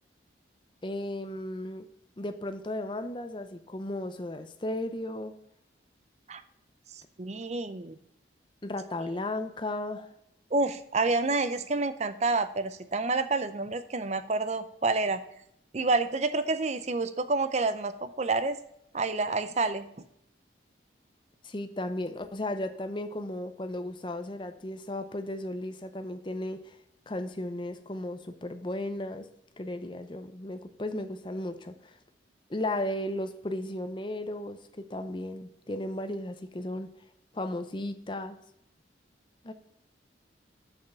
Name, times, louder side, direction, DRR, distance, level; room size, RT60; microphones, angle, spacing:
voice 1, 0.8-1.9 2.2-5.4 8.6-10.1 21.4-26.8 27.1-29.3 29.6-32.0 32.5-36.9 37.3-38.4 39.4-39.5, left 1 dB, 25° left, 9 dB, 0.6 m, -35 dB
voice 2, 7.2-8.0 10.5-15.2 15.7-18.6 18.9-19.9, right 3 dB, 35° right, 11 dB, 0.6 m, -28 dB
7.0 x 5.7 x 5.4 m, 0.76 s
head